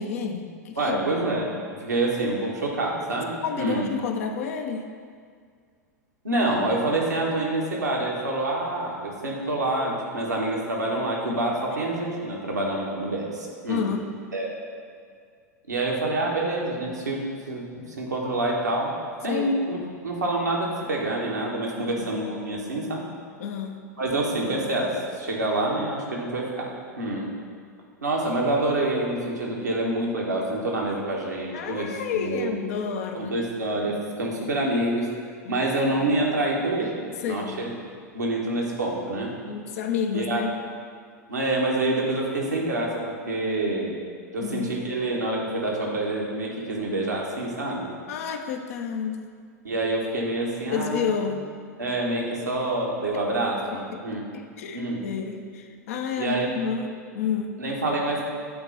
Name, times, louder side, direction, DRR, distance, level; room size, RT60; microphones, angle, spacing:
voice 1, 0.0-1.1 3.4-4.9 13.7-14.1 19.3-19.6 21.8-22.2 23.4-23.8 31.5-33.4 35.4-35.7 37.2-37.7 39.4-40.6 44.4-44.8 48.1-49.3 50.7-51.5 53.7-57.6, left 6 dB, 60° left, 5 dB, 0.6 m, -30 dB
voice 2, 0.8-1.5 1.8-3.9 6.2-13.9 14.3-14.5 15.7-17.6 18.0-18.9 19.2-19.8 20.0-23.0 24.0-26.7 27.0-27.3 28.0-31.9 32.2-32.5 33.1-35.1 35.5-37.7 38.1-39.3 40.1-40.4 41.3-43.9 44.3-47.9 49.6-51.1 51.8-54.2 54.7-55.0 56.2-56.5 57.6-58.2, right 2 dB, 80° right, -3 dB, 1.3 m, -27 dB
8.6 x 3.0 x 5.5 m, 2.1 s
figure-of-eight pair, 90°, 9 cm